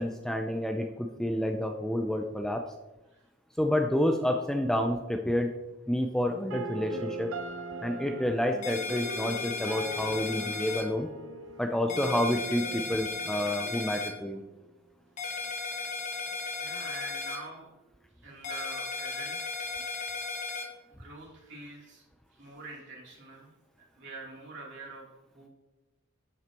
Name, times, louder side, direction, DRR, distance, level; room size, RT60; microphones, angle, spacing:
voice 1, 0.0-2.6 3.6-5.5 5.9-7.3 7.8-11.1 11.6-14.4, left 1 dB, 5° left, 3 dB, 0.5 m, -29 dB
sound 1, 6.5-14.5, right 1 dB, 75° right, 0.8 m, -41 dB
sound 2, 8.6-10.8 11.9-14.1 15.2-17.4 18.4-20.6, left 4 dB, 35° left, 1.4 m, -35 dB
voice 2, 16.6-17.7 18.2-19.5 21.0-22.0 22.4-23.5 23.9-25.1 25.3-25.5, right 2 dB, 60° right, -3 dB, 3.2 m, -45 dB
11.0 x 7.8 x 3.0 m, 1.0 s
head